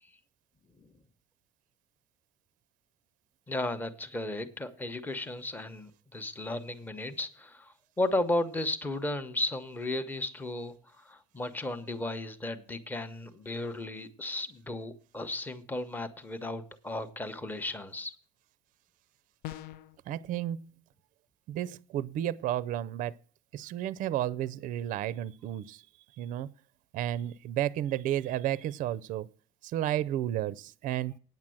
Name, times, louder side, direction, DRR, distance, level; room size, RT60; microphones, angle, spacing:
voice 1, 3.5-18.1, left 2 dB, 10° left, 0.8 m, -34 dB
sound 1, 19.4-20.0, left 14 dB, 70° left, 0.5 m, -41 dB
voice 2, 20.1-20.6 21.5-23.1 23.5-25.8 26.2-26.5 26.9-29.3 29.6-31.1, right 12 dB, 50° right, 0.5 m, -32 dB
9.3 x 7.3 x 7.6 m
cardioid pair, 150°, 17 cm